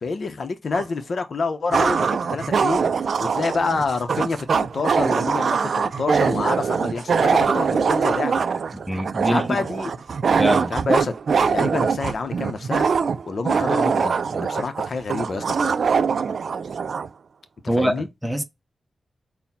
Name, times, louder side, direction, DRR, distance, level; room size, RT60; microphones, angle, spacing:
voice 1, 0.0-2.9 3.2-8.4 9.2-9.9 10.7-11.2 11.4-12.9 13.3-15.8 17.6-18.1, left 4 dB, 55° left, 0.7 m, -27 dB
sound 1, 0.7-0.8 1.7-17.1, right 6 dB, 65° right, 0.3 m, -22 dB
voice 2, 8.9-9.6 10.4-10.7 17.7-18.4, equal, 5° right, 0.7 m, -23 dB
4.0 x 2.1 x 4.1 m
wide cardioid pair, 110°, 0 cm